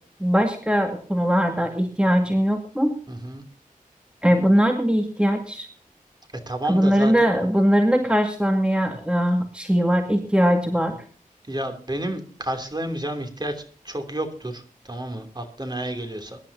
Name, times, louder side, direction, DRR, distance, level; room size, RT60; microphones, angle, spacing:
voice 1, 0.2-3.0 4.2-5.7 6.6-10.9, equal, 5° right, 4 dB, 2.0 m, -20 dB
voice 2, 3.1-3.4 6.5-7.1 11.5-16.4, right 1 dB, 30° right, 6 dB, 2.9 m, -30 dB
23.0 x 11.5 x 2.8 m, 0.43 s
wide cardioid pair, 75°, 14 cm